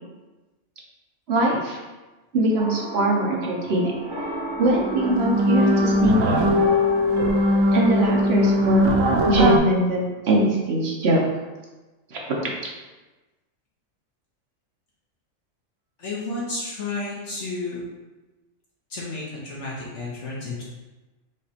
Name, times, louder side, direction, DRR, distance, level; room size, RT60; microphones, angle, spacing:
voice 1, 1.3-1.8 2.3-3.9 4.6-6.5 7.7-8.8 9.2-11.2 12.1-12.2, right 1 dB, 60° right, -2 dB, 1.0 m, -22 dB
sound 1, 2.6-8.7, right 2 dB, 30° right, 0.4 m, -34 dB
sound 2, 4.2-4.3 4.6-9.6, left 1 dB, 90° right, 1.0 m, -20 dB
voice 2, 16.0-17.8 18.9-20.6, left 3 dB, 65° left, -6 dB, 1.2 m, -31 dB
5.1 x 3.0 x 2.8 m, 1.2 s
omnidirectional pair, 1.3 m